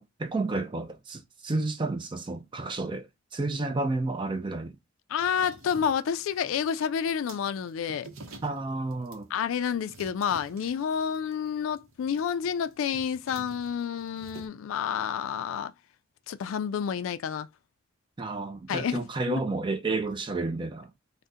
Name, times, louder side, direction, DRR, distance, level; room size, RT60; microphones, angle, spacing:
voice 1, 0.0-4.7 8.4-9.3 18.2-20.9, right 3 dB, 20° right, 0.4 m, -31 dB
voice 2, 5.1-8.1 9.3-15.7 16.3-17.5 18.7-19.4, left 7 dB, 70° left, 0.3 m, -29 dB
sound 1, 5.2-14.5, right 2 dB, 75° right, 0.7 m, -50 dB
2.7 x 2.1 x 3.4 m
head